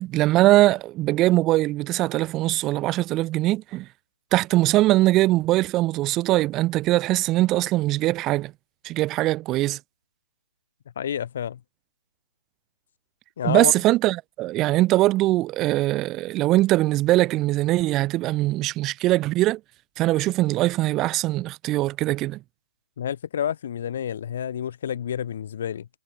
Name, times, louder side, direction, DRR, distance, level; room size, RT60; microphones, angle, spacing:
voice 1, 0.0-3.9 4.3-8.5 8.8-9.8 13.4-19.6 20.0-22.4, right 17 dB, 15° right, 1.1 m, -21 dB
voice 2, 11.0-11.6 13.4-13.7 23.0-25.9, left 9 dB, 45° left, 2.8 m, -29 dB
hypercardioid pair, 155°, 0 cm